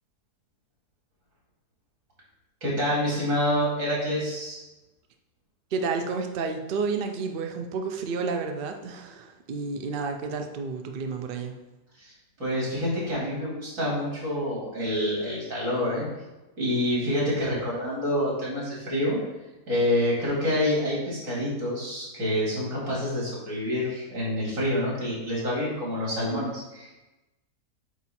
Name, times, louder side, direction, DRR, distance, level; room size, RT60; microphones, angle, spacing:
voice 1, 2.6-4.6 12.0-12.1 12.4-16.1 16.6-19.2 19.7-27.0, left 1 dB, 55° right, -5 dB, 2.7 m, -27 dB
voice 2, 5.7-11.5, right 4 dB, 75° right, 4 dB, 0.5 m, -31 dB
8.3 x 2.8 x 4.2 m, 1.1 s
omnidirectional pair, 1.7 m